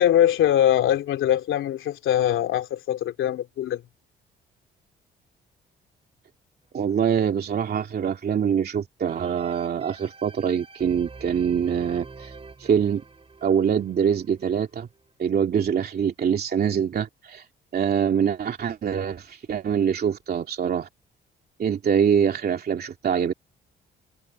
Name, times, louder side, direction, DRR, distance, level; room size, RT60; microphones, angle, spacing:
voice 1, 0.0-3.8, left 11 dB, 80° left, 3.3 m, -22 dB
voice 2, 6.7-12.3 12.6-13.0 13.4-14.9 15.2-17.4 17.7-20.9 21.6-23.3, right 8 dB, 50° right, 2.5 m, -24 dB
sound 1, 9.1-15.1 15.6-15.7, right 4 dB, 30° right, 8.0 m, -45 dB
cardioid pair, 90°, 20 cm